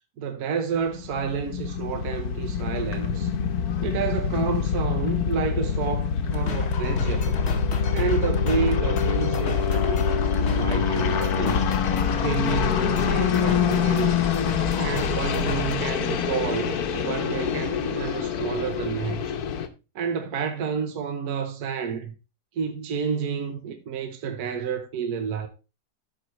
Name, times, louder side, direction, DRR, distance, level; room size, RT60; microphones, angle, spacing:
voice 1, 0.2-3.3 3.8-7.4 7.9-11.7 12.2-14.2 14.7-19.4 19.9-22.1 22.5-25.5, right 7 dB, 65° right, 1.3 m, -30 dB
sound 1, 0.9-19.7, left 7 dB, 65° left, 1.2 m, -25 dB
sound 2, 6.3-15.7, left 5 dB, 45° left, 1.0 m, -32 dB
14.0 x 4.9 x 3.0 m
omnidirectional pair, 1.9 m